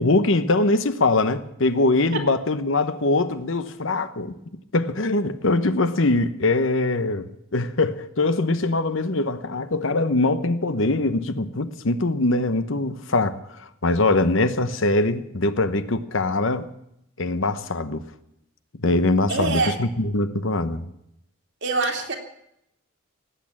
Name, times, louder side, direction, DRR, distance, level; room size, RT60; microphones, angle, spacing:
voice 1, 0.0-4.3 4.7-16.7 17.2-18.0 18.8-20.9, left 2 dB, 60° left, 1.0 m, -22 dB
voice 2, 19.3-19.8 21.6-22.2, right 3 dB, 55° right, 2.6 m, -24 dB
18.5 x 8.7 x 8.7 m
head